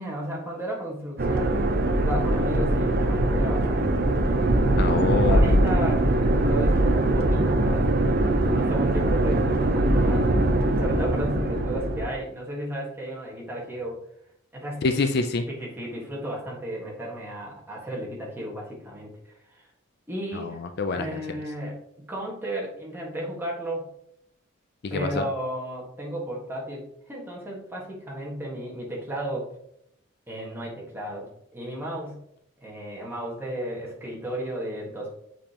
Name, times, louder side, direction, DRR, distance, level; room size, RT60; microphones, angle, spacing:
voice 1, 0.0-1.6 2.0-4.1 5.3-7.9 8.5-10.3 10.8-14.0 14.5-14.8 15.5-19.7 20.1-20.6 20.9-23.9 24.9-29.5 30.3-32.2 32.6-35.1, equal, 10° right, -4 dB, 1.5 m, -34 dB
sound 1, 1.2-12.1, right 1 dB, 45° right, 0.6 m, -22 dB
voice 2, 4.8-5.5 14.8-15.4 20.3-21.1 24.8-25.2, left 3 dB, 50° left, 8 dB, 0.4 m, -26 dB
7.2 x 5.1 x 2.9 m, 0.74 s
head